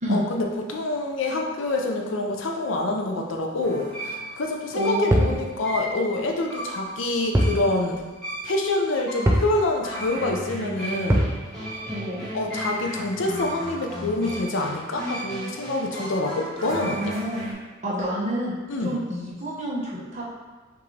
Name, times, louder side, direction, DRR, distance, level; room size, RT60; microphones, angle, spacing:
voice 1, 0.1-8.0 8.4-11.3 12.3-17.1 18.7-19.0, left 2 dB, 85° left, 1 dB, 0.6 m, -26 dB
sound 1, 3.6-17.5, equal, 5° left, 1.3 m, -35 dB
voice 2, 4.7-5.5 11.9-12.3 16.8-17.6 17.8-20.2, equal, 35° right, -6 dB, 1.1 m, -28 dB
sound 2, 5.1-5.4 7.3-7.6 7.9-8.0 9.3-9.5 11.1-11.4, equal, 15° right, 0.4 m, -20 dB
5.8 x 2.6 x 3.2 m, 1.3 s
head